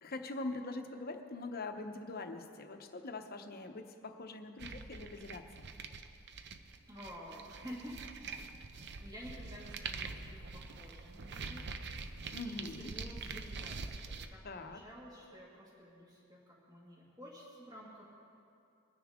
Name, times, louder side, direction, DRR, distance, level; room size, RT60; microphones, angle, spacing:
voice 1, 0.0-5.7 12.3-12.9 14.4-14.8, left 2 dB, 45° left, 6 dB, 0.9 m, -43 dB
sound 1, 4.6-14.3, right 4 dB, 55° right, 0.6 m, -45 dB
voice 2, 6.9-8.3 9.0-11.9 12.4-18.1, equal, 20° right, -5 dB, 2.2 m, -51 dB
22.0 x 9.7 x 3.7 m, 2.5 s
head